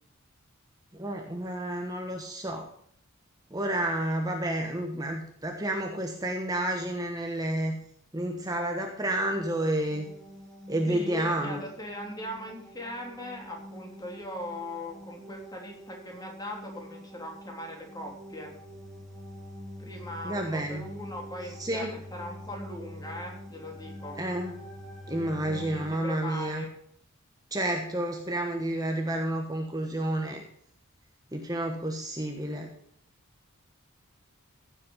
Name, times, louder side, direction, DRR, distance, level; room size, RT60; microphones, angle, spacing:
voice 1, 0.9-2.7 3.5-7.8 8.1-10.1 10.7-11.6 20.2-20.8 21.6-21.9 24.2-24.5 25.1-26.6 27.5-30.4 31.3-32.7, right 1 dB, 20° right, 3 dB, 1.3 m, -30 dB
sound 1, 9.9-25.9, equal, ahead, 2.9 m, -45 dB
voice 2, 10.9-18.5 19.8-24.2 25.5-26.7, left 1 dB, 20° left, 0 dB, 3.5 m, -40 dB
15.5 x 7.6 x 5.7 m, 0.66 s
head